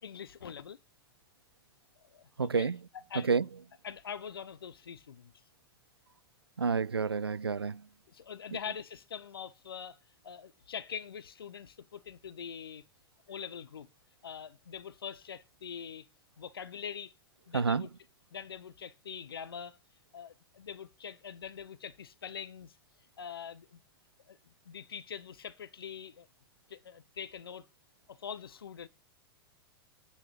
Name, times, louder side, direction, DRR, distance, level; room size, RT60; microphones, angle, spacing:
voice 1, 0.0-0.8 2.0-2.7 3.1-3.3 3.8-5.3 8.1-10.0 10.2-12.8 13.3-13.9 14.2-16.1 16.4-17.1 17.5-17.9 18.3-19.8 20.1-22.8 23.2-23.8 24.3-26.3 26.7-27.7 28.1-28.9, left 7 dB, 70° left, 1.4 m, -43 dB
voice 2, 2.4-2.8 3.3-3.4 6.6-7.8 17.5-17.9, right 5 dB, 85° right, 0.5 m, -29 dB
10.5 x 5.7 x 8.7 m
figure-of-eight pair, 95°, 13 cm